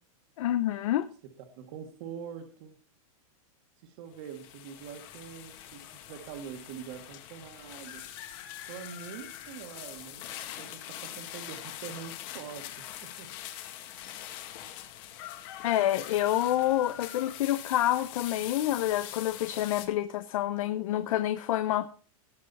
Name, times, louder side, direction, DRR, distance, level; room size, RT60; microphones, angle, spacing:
voice 1, 0.4-1.1 15.6-21.9, left 13 dB, 65° left, 11 dB, 0.8 m, -28 dB
voice 2, 1.6-2.8 3.8-8.0 8.7-10.2 10.6-13.3, right 8 dB, 50° right, 4 dB, 1.8 m, -44 dB
sound 1, 4.1-19.9, left 12 dB, 45° left, 2.0 m, -43 dB
18.0 x 6.4 x 4.1 m, 0.41 s
supercardioid pair, 155°, 18 cm